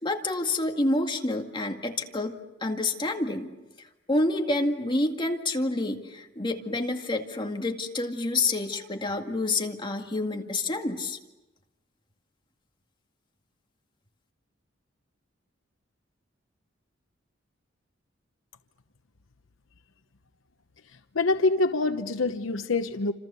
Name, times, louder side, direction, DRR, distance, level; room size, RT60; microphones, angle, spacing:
voice 1, 0.0-2.3 2.6-3.5 4.1-11.2, left 2 dB, 25° left, 3 dB, 2.1 m, -28 dB
voice 2, 21.1-23.1, left 3 dB, 85° left, 8 dB, 1.0 m, -25 dB
29.0 x 27.0 x 7.0 m, 1.0 s
head